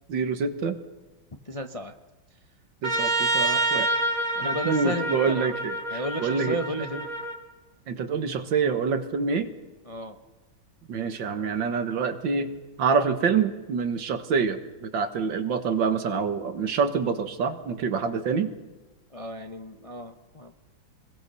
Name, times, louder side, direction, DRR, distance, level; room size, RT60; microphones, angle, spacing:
voice 1, 0.1-0.8 2.8-3.9 4.4-6.6 7.9-9.5 10.9-12.5 12.8-18.5, right 5 dB, 65° right, 9 dB, 2.0 m, -26 dB
voice 2, 1.4-1.9 4.3-5.6 5.9-7.1 9.8-10.2 19.1-20.5, equal, 25° left, 5 dB, 0.8 m, -33 dB
Trumpet, 2.8-7.4, right 2 dB, 85° right, 2.6 m, -27 dB
26.5 x 21.5 x 6.8 m, 1.2 s
omnidirectional pair, 2.2 m